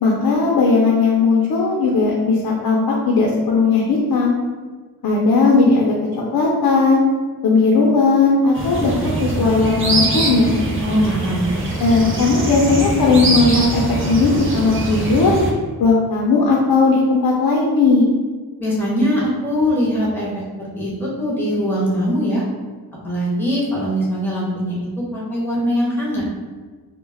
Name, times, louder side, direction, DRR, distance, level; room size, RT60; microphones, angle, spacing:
voice 1, 0.0-4.4 5.0-6.0 6.3-7.0 7.4-10.6 11.8-15.3 15.8-18.1, left 4 dB, 60° left, -2 dB, 0.5 m, -16 dB
sound 1, 8.5-15.5, right 2 dB, 35° right, 0.4 m, -23 dB
voice 2, 10.8-11.4 18.6-22.4 23.0-26.2, equal, 5° left, -6 dB, 0.7 m, -21 dB
2.2 x 2.1 x 3.2 m, 1.4 s
wide cardioid pair, 150°, 40 cm